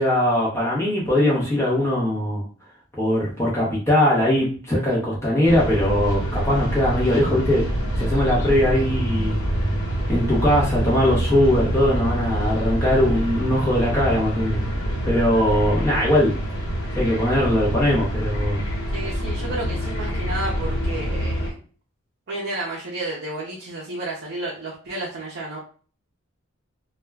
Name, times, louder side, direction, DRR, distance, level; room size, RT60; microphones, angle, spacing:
voice 1, 0.0-2.4 2.9-7.6 8.0-9.4 10.1-14.6 15.0-16.3 16.9-18.7, left 1 dB, 15° left, -6 dB, 0.7 m, -20 dB
sound 1, 5.4-21.5, equal, 60° left, 1.0 m, -26 dB
voice 2, 18.9-21.5 22.3-25.6, right 2 dB, 50° right, -4 dB, 0.6 m, -31 dB
2.2 x 2.1 x 3.4 m, 0.41 s
head